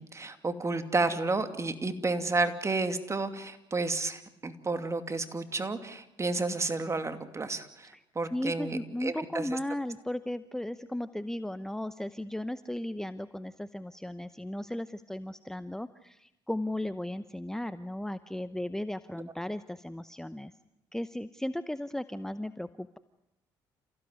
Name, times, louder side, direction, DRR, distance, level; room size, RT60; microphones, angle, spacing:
voice 1, 0.0-9.6, right 3 dB, 30° right, 9 dB, 2.6 m, -31 dB
voice 2, 8.3-20.5 20.9-23.0, left 1 dB, 5° left, 13 dB, 0.9 m, -36 dB
28.0 x 16.0 x 9.5 m, 0.85 s
supercardioid pair, 65°, 11 cm